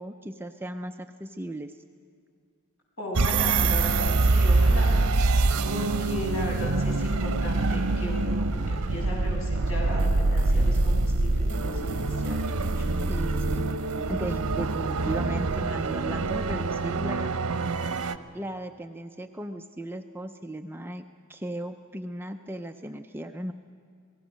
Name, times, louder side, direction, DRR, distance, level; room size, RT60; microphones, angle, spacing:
voice 1, 0.0-1.8 13.1-13.8 14.1-17.4 18.3-21.0 21.3-23.5, right 1 dB, 10° right, 6 dB, 0.5 m, -36 dB
voice 2, 3.0-4.9 5.6-12.9, equal, 65° left, -4 dB, 7.5 m, -36 dB
sound 1, 3.1-18.2, right 3 dB, 90° right, 0.8 m, -25 dB
28.0 x 18.5 x 6.4 m, 2.2 s
head